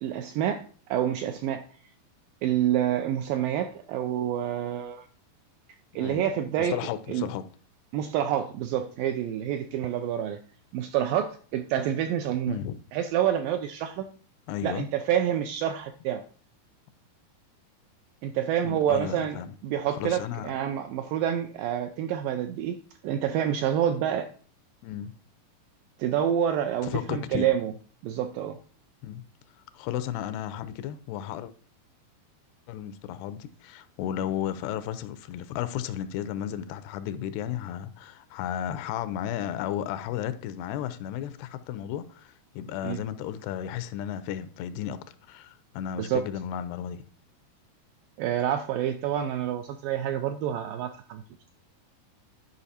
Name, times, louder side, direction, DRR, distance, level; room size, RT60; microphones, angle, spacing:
voice 1, 0.0-0.6 0.9-1.6 2.4-5.1 6.0-6.8 7.1-7.3 7.9-10.4 10.7-12.6 12.9-14.1 14.6-16.2 18.2-19.4 19.6-22.8 23.0-24.3 26.0-27.7 28.0-28.6 42.8-43.0 46.0-46.2 48.2-51.2, right 10 dB, 85° right, 2.0 m, -27 dB
voice 2, 5.9-6.3 6.6-7.4 12.5-12.8 14.5-14.9 18.6-19.5 19.9-20.5 24.8-25.1 26.8-27.5 29.0-29.2 29.7-31.5 32.7-45.0 45.3-47.0, left 10 dB, 90° left, 2.8 m, -34 dB
10.5 x 5.2 x 4.2 m
omnidirectional pair, 4.6 m